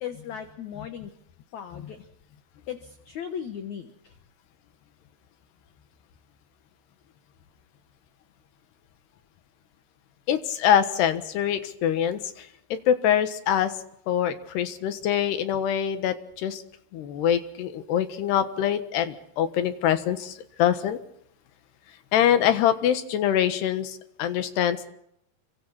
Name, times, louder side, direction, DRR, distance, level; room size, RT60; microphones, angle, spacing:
voice 1, 0.0-1.1 1.5-2.0 2.7-3.9, left 8 dB, 60° left, 7 dB, 2.2 m, -36 dB
voice 2, 10.3-12.5 12.9-13.7 14.1-16.6 16.9-21.0 22.1-24.9, left 10 dB, 85° left, 10 dB, 3.6 m, -24 dB
29.5 x 24.5 x 4.2 m, 0.73 s
omnidirectional pair, 4.6 m